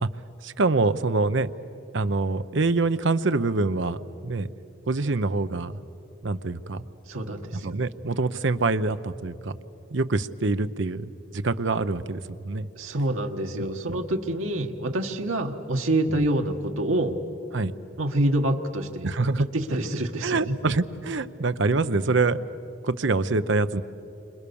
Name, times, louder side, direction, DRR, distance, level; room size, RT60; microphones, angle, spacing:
voice 1, 0.4-1.5 1.9-4.5 4.9-5.8 6.2-6.8 7.5-9.6 9.9-12.7 13.9-14.0 16.1-16.2 17.5-17.7 19.0-19.5 20.2-22.5 22.8-23.8, right 3 dB, 65° right, 12 dB, 0.7 m, -25 dB
voice 2, 7.1-7.7 12.7-17.2 18.0-19.1 19.4-20.6, right 1 dB, 90° right, 3 dB, 1.5 m, -26 dB
30.0 x 26.0 x 7.0 m, 2.8 s
head